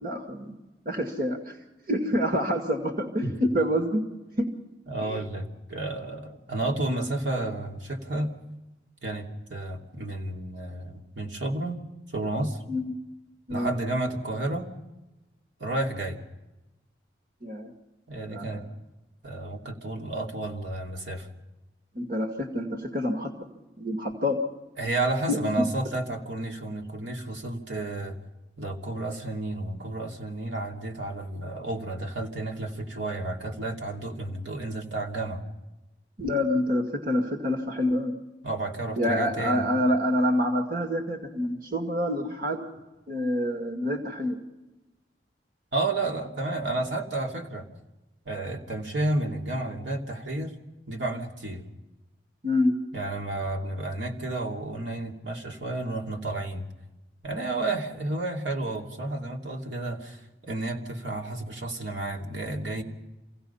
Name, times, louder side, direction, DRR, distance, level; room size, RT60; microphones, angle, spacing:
voice 1, 0.0-0.6 0.9-1.6 1.9-4.0 5.0-5.2 12.7-12.9 13.5-13.7 17.4-17.7 18.3-18.6 21.9-23.3 23.8-24.4 25.3-25.6 36.2-38.1 39.0-42.6 43.1-44.4 52.4-52.7, left 1 dB, 50° right, 3 dB, 2.1 m, -27 dB
voice 2, 4.9-8.3 9.0-11.8 12.1-12.6 13.5-14.7 15.6-16.2 18.1-18.6 19.2-21.3 24.8-28.1 28.6-35.4 38.4-39.6 45.7-47.6 48.2-50.5 50.9-51.6 52.9-56.6 57.2-62.8, right 2 dB, 90° right, 1 dB, 2.8 m, -31 dB
27.0 x 17.0 x 5.6 m, 1.0 s
head